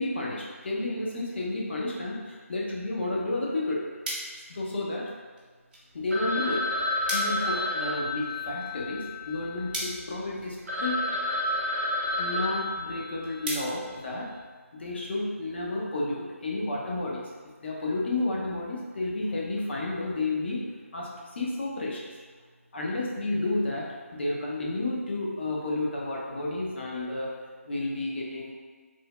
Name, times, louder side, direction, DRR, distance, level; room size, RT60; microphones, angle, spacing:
voice 1, 0.0-3.8 4.5-5.0 5.9-6.6 7.1-11.0 12.2-14.3 14.7-17.2 17.6-20.6 20.9-21.1 21.4-22.1 22.7-23.9 24.1-27.3 27.7-28.5, left 2 dB, 45° left, -3 dB, 0.6 m, -31 dB
sound 1, 3.3-14.8, right 1 dB, 35° right, 0.7 m, -42 dB
Telephone, 6.1-9.9 10.4-10.5 10.7-13.5, left 1 dB, 80° right, 0.6 m, -30 dB
3.1 x 2.0 x 2.2 m, 1.5 s
figure-of-eight pair, 165°, 8 cm